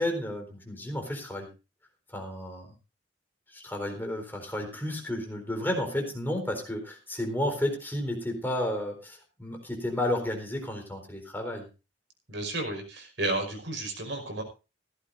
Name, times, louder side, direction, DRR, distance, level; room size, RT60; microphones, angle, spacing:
voice 1, 0.0-1.5 2.1-2.7 3.5-11.7, left 1 dB, 10° left, 3 dB, 4.1 m, -32 dB
voice 2, 12.3-14.4, right 2 dB, 65° right, 5 dB, 5.4 m, -32 dB
16.5 x 16.0 x 2.6 m, 0.31 s
head